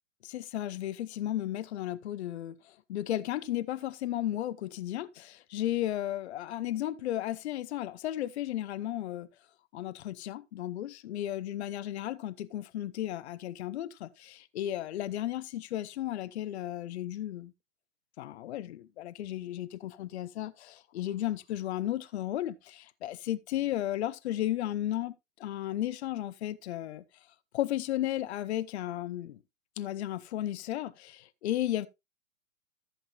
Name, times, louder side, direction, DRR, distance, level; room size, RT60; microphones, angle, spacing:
voice 1, 0.2-9.3 9.7-17.5 18.2-25.1 25.4-27.0 27.5-29.4 29.8-31.9, left 13 dB, 55° left, 0.8 m, -34 dB
14.5 x 7.7 x 2.4 m
hypercardioid pair, 120°, 40 cm